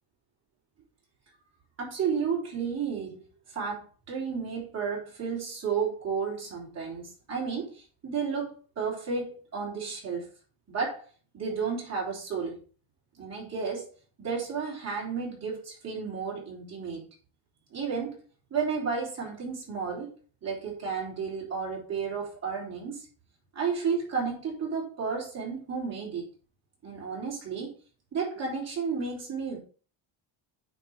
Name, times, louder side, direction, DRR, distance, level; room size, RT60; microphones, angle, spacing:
voice 1, 1.8-3.2 3.5-10.2 10.7-11.0 11.3-12.6 13.2-13.9 14.2-17.1 17.7-18.2 18.5-20.1 20.4-23.0 23.5-26.3 26.8-27.7 28.1-29.6, right 5 dB, 30° right, 3.4 m, -32 dB
8.9 x 4.8 x 3.4 m
cardioid pair, 170°, 50 cm